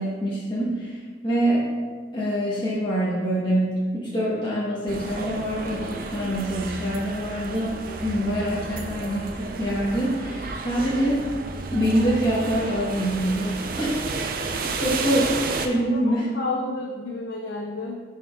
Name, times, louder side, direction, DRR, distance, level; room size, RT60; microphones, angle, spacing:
voice 1, 0.0-1.7 2.1-11.2 11.7-14.0 14.5-15.2 15.6-16.3, right 1 dB, 25° left, -8 dB, 1.1 m, -25 dB
sound 1, 4.9-15.7, right 3 dB, 50° right, 0.4 m, -32 dB
voice 2, 14.6-15.0 15.9-18.0, left 2 dB, 80° left, 0 dB, 0.6 m, -32 dB
9.0 x 4.5 x 2.4 m, 1.5 s
head